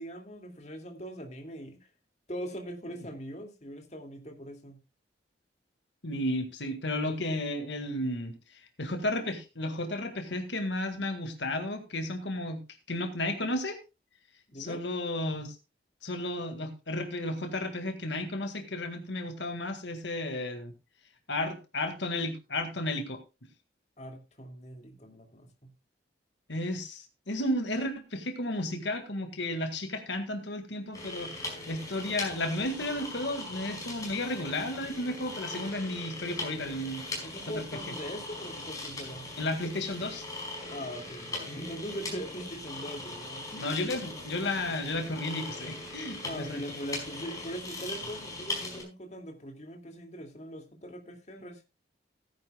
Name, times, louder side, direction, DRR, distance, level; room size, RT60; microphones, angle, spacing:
voice 1, 0.0-1.9 2.3-4.8 14.5-14.8 24.0-25.7 37.2-39.3 40.7-43.9 46.2-51.6, equal, 40° left, 4 dB, 2.4 m, -41 dB
voice 2, 6.0-12.6 12.9-13.8 14.6-15.6 16.0-20.7 21.3-23.2 26.5-37.3 37.5-37.9 39.4-40.3 43.6-46.6, left 1 dB, 75° left, 7 dB, 1.8 m, -33 dB
sound 1, 30.9-48.8, left 2 dB, 20° left, 4.9 m, -40 dB
17.5 x 10.5 x 2.3 m, 0.27 s
head